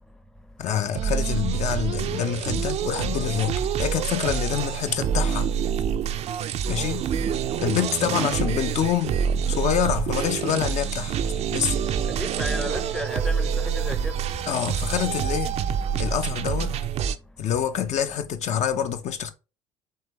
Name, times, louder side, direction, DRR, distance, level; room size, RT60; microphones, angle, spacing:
voice 1, 0.6-5.5 6.7-7.0 7.6-9.2 9.5-11.8 14.5-15.6 16.0-16.7 17.4-19.3, left 9 dB, 50° left, 0.6 m, -26 dB
sound 1, 0.9-17.2, right 7 dB, 45° right, 0.4 m, -27 dB
voice 2, 12.2-14.2, left 1 dB, 5° left, 0.6 m, -33 dB
4.8 x 3.3 x 3.0 m
hypercardioid pair, 60°, 15 cm